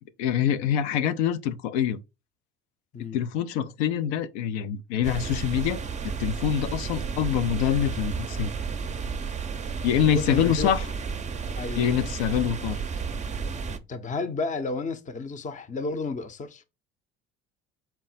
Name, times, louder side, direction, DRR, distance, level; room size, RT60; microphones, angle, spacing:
voice 1, 0.2-2.0 3.1-5.8 6.2-8.5 9.8-10.8 11.8-12.8, left 9 dB, 80° left, 0.6 m, -25 dB
sound 1, 5.0-13.8, right 5 dB, 20° right, 0.5 m, -32 dB
voice 2, 9.9-10.7 11.6-11.9 13.7-16.7, left 3 dB, 25° left, 0.6 m, -32 dB
4.4 x 2.0 x 4.0 m
hypercardioid pair, 70°, 33 cm